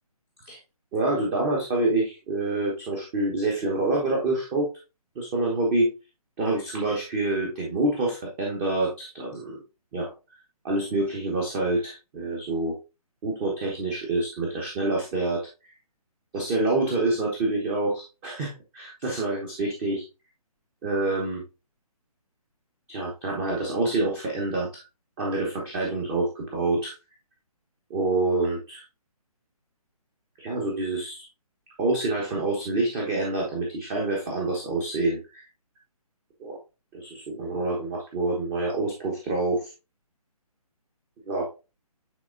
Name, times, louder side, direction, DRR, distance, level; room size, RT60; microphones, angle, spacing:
voice 1, 0.9-4.7 5.1-5.9 6.4-9.6 9.9-10.1 10.6-12.7 13.2-15.7 16.3-20.0 20.8-21.4 22.9-24.8 25.2-26.9 27.9-28.8 30.4-31.3 31.8-35.4 36.4-36.6 36.9-39.7 41.3-41.4, right 2 dB, 20° right, -1 dB, 1.1 m, -27 dB
9.3 x 4.2 x 2.5 m, 0.29 s
figure-of-eight pair, 140°, 19 cm